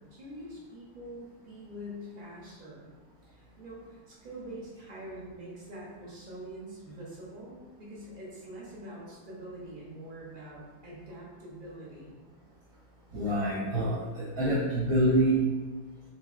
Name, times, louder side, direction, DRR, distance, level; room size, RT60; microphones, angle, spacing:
voice 1, 0.0-2.9 3.2-12.2, right 1 dB, 40° right, -6 dB, 0.9 m, -45 dB
voice 2, 13.1-15.5, right 1 dB, 70° right, -7 dB, 1.0 m, -26 dB
3.5 x 2.9 x 2.4 m, 1.3 s
omnidirectional pair, 1.6 m